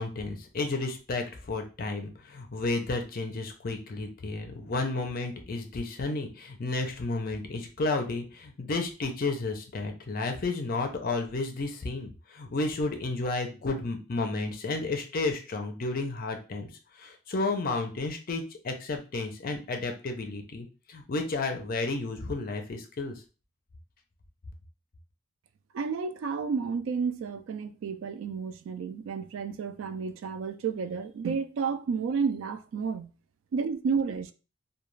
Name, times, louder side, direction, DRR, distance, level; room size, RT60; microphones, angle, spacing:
voice 1, 0.0-16.7 17.0-23.1, left 3 dB, 45° left, 0.5 m, -32 dB
voice 2, 25.7-33.1 33.5-34.3, right 5 dB, 70° right, 0.3 m, -31 dB
2.3 x 2.3 x 3.1 m
head